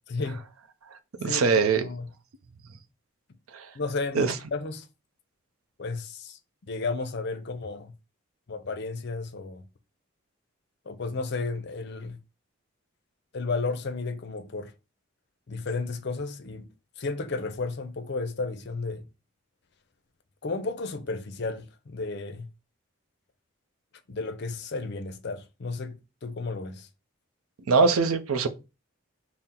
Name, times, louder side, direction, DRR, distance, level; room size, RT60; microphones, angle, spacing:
voice 1, 0.1-0.4 1.2-1.4 1.8-2.1 3.7-4.9 5.8-6.4 6.7-7.9 8.5-9.6 10.9-12.2 13.3-14.7 15.5-16.7 17.0-19.0 20.4-22.5 24.1-26.0 26.2-26.9, left 3 dB, 50° left, 0.5 m, -33 dB
voice 2, 1.2-1.8 3.5-3.7 4.2-4.3 27.7-28.5, right 4 dB, 80° right, 0.5 m, -22 dB
4.2 x 2.0 x 3.7 m
head